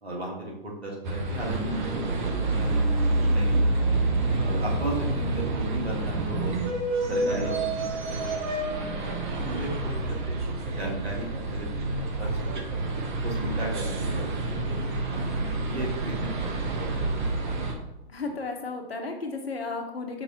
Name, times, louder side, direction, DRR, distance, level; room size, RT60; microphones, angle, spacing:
voice 1, 0.0-1.8 2.1-3.8 4.4-6.7 7.1-7.5 7.8-10.4 10.7-12.8 13.2-17.6, right 1 dB, 80° right, -2 dB, 1.5 m, -36 dB
sound 1, 1.0-17.7, right 2 dB, 50° right, 0.8 m, -28 dB
voice 2, 7.1-7.4 18.1-20.2, left 3 dB, 75° left, 4 dB, 0.9 m, -34 dB
4.7 x 2.6 x 4.1 m, 0.95 s
figure-of-eight pair, 115°, 31 cm